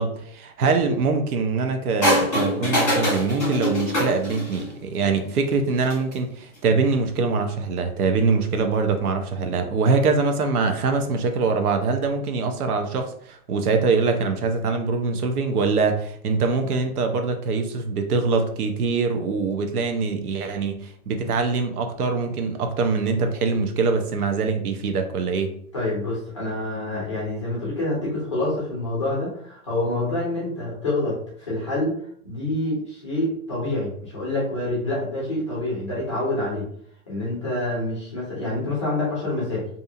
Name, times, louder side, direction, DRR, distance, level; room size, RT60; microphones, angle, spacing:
voice 1, 0.0-25.5, right 4 dB, 85° right, 6 dB, 0.7 m, -23 dB
sound 1, 2.0-4.7 5.7-6.1, left 1 dB, 5° left, 1.2 m, -23 dB
voice 2, 25.7-31.9 32.2-36.7 37.1-39.7, left 1 dB, 20° left, -6 dB, 0.5 m, -27 dB
2.7 x 2.4 x 2.6 m, 0.63 s
hypercardioid pair, 175°, 44 cm